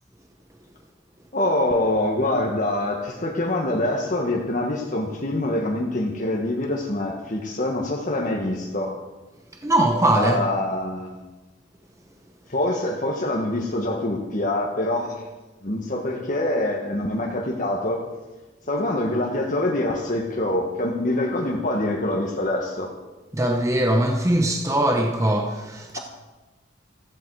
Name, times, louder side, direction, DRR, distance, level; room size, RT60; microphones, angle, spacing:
voice 1, 1.3-9.0 10.2-11.2 12.5-15.3 15.6-18.0 18.7-22.9, left 1 dB, 45° left, 1.5 m, -25 dB
voice 2, 9.5-10.4 23.3-26.0, right 1 dB, 15° right, 0.9 m, -21 dB
15.5 x 14.5 x 4.8 m
head